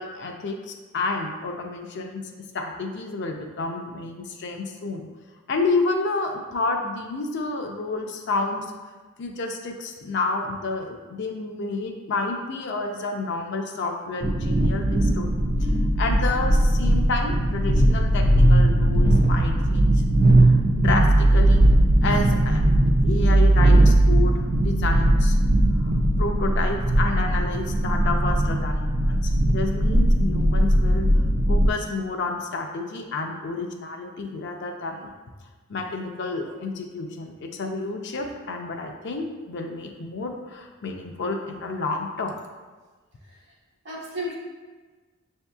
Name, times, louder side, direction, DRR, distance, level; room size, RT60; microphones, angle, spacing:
voice 1, 0.0-2.2 2.5-5.1 5.5-8.7 9.2-15.3 15.6-15.7 16.0-20.0 20.3-21.6 22.0-22.6 23.0-25.4 25.8-31.1 31.5-35.1 35.7-42.3, left 3 dB, 60° left, 3 dB, 0.5 m, -30 dB
sound 1, 14.2-31.7, right 1 dB, 35° right, 0.3 m, -19 dB
voice 2, 43.2-43.5 43.8-44.4, equal, 60° right, -3 dB, 1.0 m, -34 dB
6.5 x 2.7 x 2.3 m, 1.3 s
head